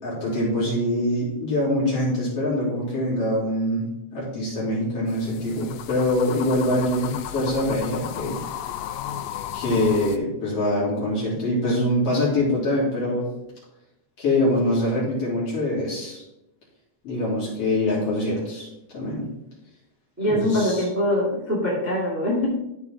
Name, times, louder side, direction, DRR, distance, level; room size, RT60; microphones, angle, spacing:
voice 1, 0.0-3.8 4.1-8.4 9.5-13.3 14.2-16.2 17.0-18.7 18.9-19.3 20.3-20.8, left 1 dB, 45° left, -7 dB, 4.2 m, -24 dB
Coroico de noche, 5.1-10.2, left 10 dB, 80° left, 1.9 m, -34 dB
voice 2, 20.2-22.5, left 1 dB, 5° right, -6 dB, 2.2 m, -23 dB
13.5 x 4.7 x 3.6 m, 0.86 s
omnidirectional pair, 3.6 m